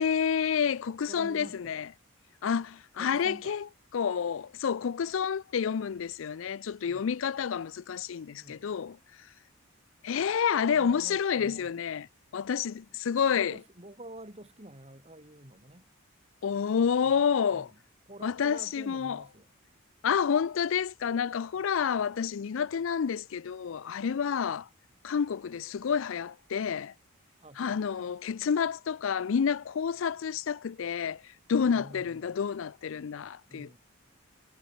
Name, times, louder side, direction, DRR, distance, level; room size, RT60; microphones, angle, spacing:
voice 1, 0.0-1.9 2.4-3.6 3.9-9.0 10.0-12.1 12.3-13.6 16.4-17.7 18.2-19.2 20.0-24.7 25.0-26.9 27.6-33.8, left 7 dB, 65° left, 0.4 m, -29 dB
voice 2, 1.1-1.9 3.0-3.6 6.8-7.1 8.3-8.8 10.6-11.8 13.3-15.8 17.0-17.2 17.5-17.8 18.1-19.5 27.4-28.0 31.5-32.4 33.5-33.8, right 1 dB, 30° right, 5.2 m, -49 dB
head